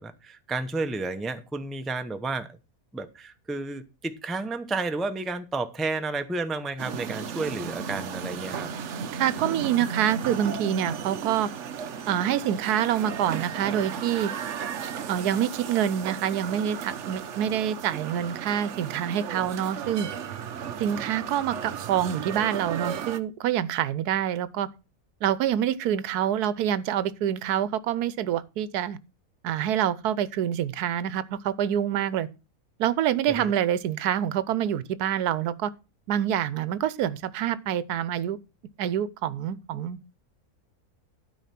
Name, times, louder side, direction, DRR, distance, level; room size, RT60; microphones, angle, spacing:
voice 1, 0.0-2.6 2.9-8.7 33.3-33.5, right 3 dB, ahead, 0.5 m, -31 dB
sound 1, 6.8-23.2, right 7 dB, 55° right, 1.0 m, -35 dB
voice 2, 9.1-11.5 12.1-14.3 15.1-20.1 20.8-24.7 25.2-29.0 29.4-32.3 32.8-35.7 36.1-38.4 38.8-40.0, right 10 dB, 85° right, 1.2 m, -26 dB
12.5 x 4.9 x 5.8 m
omnidirectional pair, 1.6 m